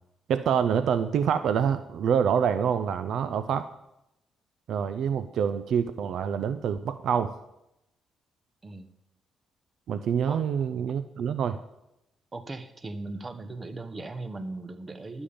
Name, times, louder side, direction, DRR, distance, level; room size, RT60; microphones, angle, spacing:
voice 1, 0.3-3.7 4.7-7.4 9.9-11.6, right 7 dB, 70° right, 12 dB, 0.4 m, -26 dB
voice 2, 12.3-15.2, right 2 dB, 25° right, 11 dB, 0.9 m, -38 dB
11.5 x 7.1 x 5.1 m, 0.87 s
cardioid pair, 90°, 0 cm